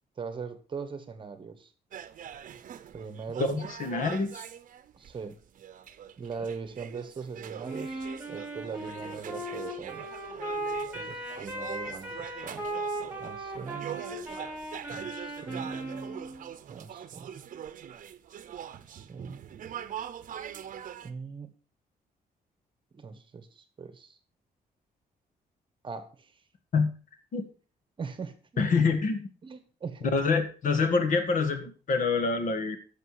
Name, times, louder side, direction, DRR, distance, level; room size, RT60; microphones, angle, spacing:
voice 1, 0.2-1.7 2.9-3.6 4.9-5.4 6.2-10.1 10.9-12.7 13.2-14.0 14.9-16.1 16.7-17.4 18.9-19.5 21.0-21.5 22.9-24.2 25.8-26.4 28.0-28.6 29.4-30.1, right 5 dB, 30° right, 10 dB, 1.1 m, -41 dB
sound 1, 1.9-21.1, right 9 dB, 55° right, 0.8 m, -43 dB
voice 2, 3.4-4.4 26.7-26.9 27.3-27.4 28.6-29.3 30.1-32.8, left 4 dB, 55° left, 8 dB, 1.6 m, -26 dB
Wind instrument woodwind instrument, 7.6-16.5, right 1 dB, 5° right, 2.5 m, -37 dB
11.0 x 6.9 x 4.8 m, 0.37 s
wide cardioid pair, 170°, 16 cm